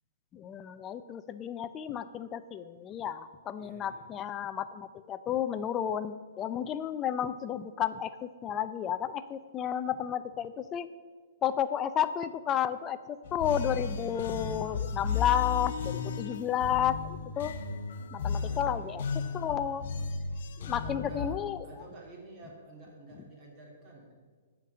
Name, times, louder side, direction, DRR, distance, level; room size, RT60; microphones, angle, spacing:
voice 1, 0.3-10.9 11.4-17.5 18.1-19.9 20.6-21.7, left 9 dB, 20° left, 12 dB, 0.4 m, -32 dB
voice 2, 3.6-4.1 16.6-17.2 18.3-19.1 20.7-24.1, right 2 dB, 30° right, -1 dB, 2.6 m, -51 dB
sound 1, 13.2-21.3, left 5 dB, 60° left, 0.8 m, -34 dB
8.2 x 5.3 x 7.7 m, 1.5 s
hypercardioid pair, 150°, 0 cm